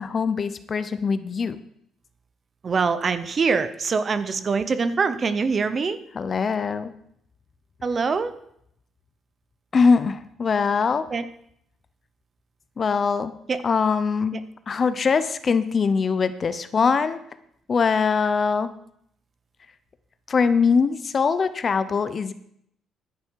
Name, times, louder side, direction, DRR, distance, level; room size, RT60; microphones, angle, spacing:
voice 1, 0.0-1.6 6.1-6.9 9.7-11.0 12.8-13.3 13.6-14.4 14.7-17.2 17.7-18.7 20.3-22.3, left 5 dB, 30° left, 13 dB, 0.7 m, -22 dB
voice 2, 2.6-6.0 7.8-8.3 11.1-11.2 13.5-13.6, right 5 dB, 30° right, 13 dB, 0.7 m, -24 dB
12.5 x 10.5 x 4.7 m, 0.71 s
cardioid pair, 165°, 0 cm